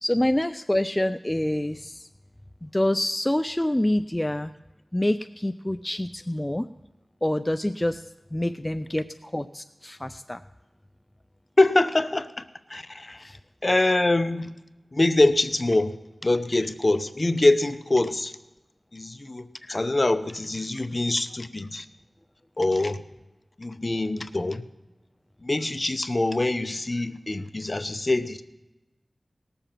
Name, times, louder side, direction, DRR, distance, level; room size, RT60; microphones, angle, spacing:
voice 1, 0.0-2.1 2.6-4.5 4.9-6.7 7.2-10.4 13.2-13.4, left 1 dB, 15° left, 9 dB, 0.4 m, -26 dB
voice 2, 11.6-12.4 12.7-13.3 13.6-14.5 14.9-18.3 18.9-21.9 22.6-23.0 23.6-24.6 25.4-28.4, left 2 dB, 40° left, 11 dB, 0.7 m, -24 dB
18.5 x 7.0 x 5.8 m, 1.0 s
wide cardioid pair, 50°, 0 cm